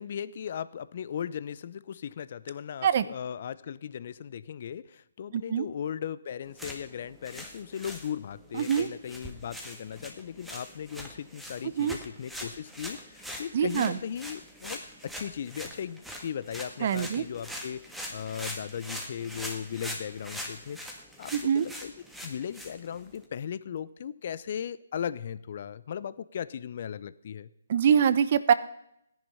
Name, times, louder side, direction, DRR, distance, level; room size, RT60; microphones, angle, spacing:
voice 1, 0.0-17.8 18.1-21.9 22.2-27.5, left 8 dB, 50° left, 17 dB, 0.6 m, -37 dB
voice 2, 5.3-5.7 8.5-8.9 11.8-11.9 13.5-14.0 16.8-17.2 21.3-21.7 27.7-28.5, right 8 dB, 45° right, 15 dB, 0.9 m, -24 dB
sound 1, 6.5-23.2, equal, ahead, 1.7 m, -43 dB
16.0 x 10.5 x 5.6 m, 0.78 s
figure-of-eight pair, 145°, 0 cm